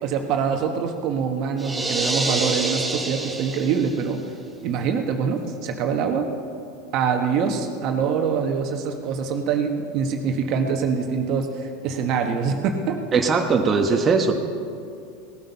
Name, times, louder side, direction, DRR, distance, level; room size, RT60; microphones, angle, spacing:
voice 1, 0.0-4.2 4.6-6.3 6.9-13.0, right 6 dB, 55° right, 4 dB, 1.4 m, -24 dB
sound 1, 1.6-4.1, right 2 dB, 10° right, 1.5 m, -27 dB
voice 2, 13.1-14.3, right 4 dB, 25° right, 2 dB, 1.3 m, -19 dB
18.5 x 9.2 x 5.7 m, 2.4 s
hypercardioid pair, 100°, 0 cm